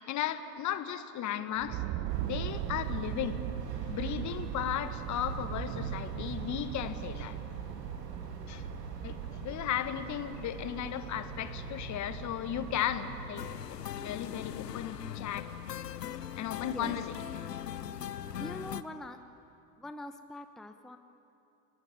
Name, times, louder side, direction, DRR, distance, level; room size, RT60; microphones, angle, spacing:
voice 1, 0.0-1.8 2.2-3.4 3.9-7.4 8.5-8.6 9.0-13.8 14.0-15.5 16.4-17.0 17.3-17.4, left 10 dB, 35° left, 11 dB, 1.4 m, -35 dB
sound 1, 1.6-11.2, right 13 dB, 40° right, 1.0 m, -39 dB
sound 2, 2.1-13.5, right 3 dB, 75° right, 2.6 m, -43 dB
sound 3, 13.4-18.8, left 10 dB, 80° left, 0.9 m, -40 dB
voice 2, 16.6-17.0 18.4-19.2 19.8-21.0, left 1 dB, ahead, 8 dB, 0.9 m, -43 dB
29.5 x 19.0 x 9.3 m, 2.7 s
figure-of-eight pair, 75°, 48 cm